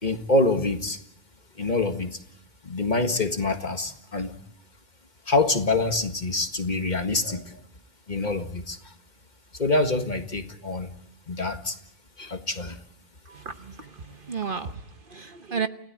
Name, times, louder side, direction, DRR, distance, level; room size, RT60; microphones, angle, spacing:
voice 1, 0.0-1.0 1.6-2.2 2.6-4.3 5.3-7.6 8.1-8.9 9.5-10.9 11.3-11.8 12.2-12.8, left 2 dB, 40° left, 7 dB, 1.8 m, -26 dB
voice 2, 13.2-15.7, right 5 dB, 45° right, 9 dB, 1.2 m, -33 dB
29.5 x 16.5 x 8.8 m, 0.75 s
omnidirectional pair, 1.3 m